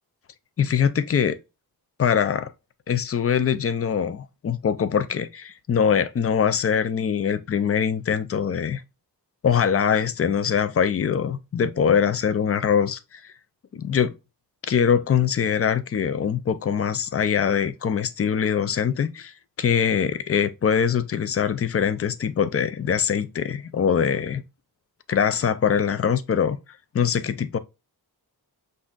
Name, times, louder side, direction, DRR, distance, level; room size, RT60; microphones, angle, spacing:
voice 1, 0.6-1.4 2.0-2.5 2.9-8.8 9.4-13.2 13.7-14.1 14.7-24.4 25.1-26.6 26.9-27.6, left 7 dB, 40° left, 0.4 m, -23 dB
5.6 x 2.6 x 2.4 m
wide cardioid pair, 95°, 39 cm